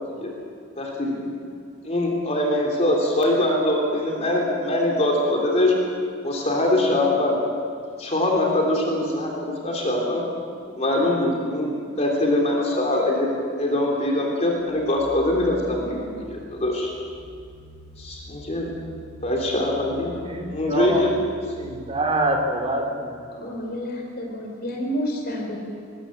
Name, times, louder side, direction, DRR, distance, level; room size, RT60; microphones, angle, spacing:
voice 1, 0.8-1.2 1.8-5.7 6.2-7.4 8.0-10.2 10.8-11.7 12.0-13.3 13.6-16.9 18.0-18.7 19.2-21.1, left 1 dB, 35° left, -1 dB, 3.3 m, -23 dB
sound 1, 14.6-22.4, equal, 15° left, 7.7 m, -44 dB
voice 2, 20.3-21.1 21.6-23.2, right 1 dB, 30° right, 3 dB, 2.6 m, -25 dB
voice 3, 23.3-25.6, equal, 50° left, 0 dB, 4.5 m, -30 dB
21.0 x 17.5 x 7.7 m, 2.3 s
head